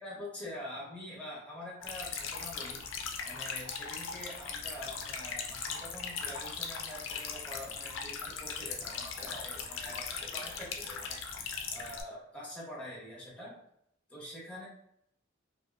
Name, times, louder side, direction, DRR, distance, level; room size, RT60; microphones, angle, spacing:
voice 1, 0.0-2.8 3.2-13.6 14.1-14.6, left 1 dB, 5° left, -6 dB, 0.8 m, -45 dB
sound 1, 1.8-12.0, left 5 dB, 75° left, 0.4 m, -39 dB
2.6 x 2.3 x 2.3 m, 0.75 s
head